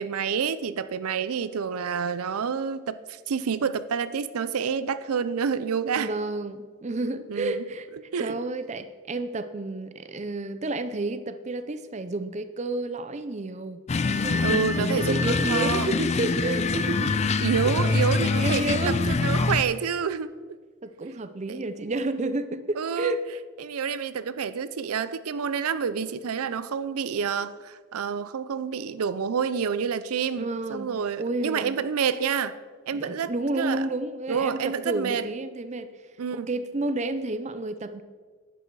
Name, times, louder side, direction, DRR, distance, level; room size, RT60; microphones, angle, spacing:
voice 1, 0.0-6.1 7.3-7.6 8.1-8.4 14.4-15.9 17.4-20.4 21.5-21.7 22.8-23.2 23.6-32.5 32.9-33.3 33.6-33.9 34.3-35.2 36.2-36.5, right 6 dB, 85° right, 14 dB, 0.5 m, -28 dB
voice 2, 6.0-7.9 8.2-13.8 14.2-17.1 18.4-19.1 20.8-23.2 30.4-30.9 31.2-31.8 32.9-35.9 36.3-38.0, right 2 dB, 30° right, 11 dB, 0.5 m, -30 dB
sound 1, 13.9-19.6, left 3 dB, 30° left, 0.4 m, -24 dB
11.0 x 9.0 x 4.7 m, 1.5 s
head